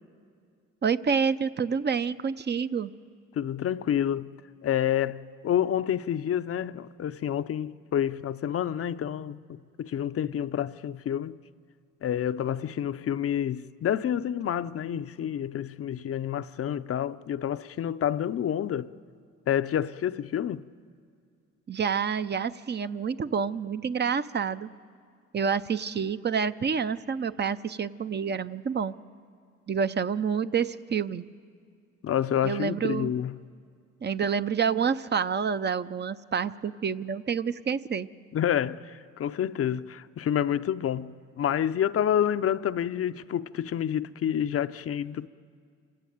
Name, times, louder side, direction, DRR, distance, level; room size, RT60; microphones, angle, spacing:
voice 1, 0.8-2.9 21.7-24.7 25.3-28.9 29.7-31.2 32.4-33.1 34.0-38.1, right 6 dB, 35° right, 0.6 m, -28 dB
voice 2, 3.4-4.3 4.6-11.4 12.0-18.9 19.5-20.7 32.0-33.3 38.3-45.3, left 10 dB, 50° left, 0.6 m, -28 dB
26.5 x 15.5 x 9.3 m
cardioid pair, 90°, 30 cm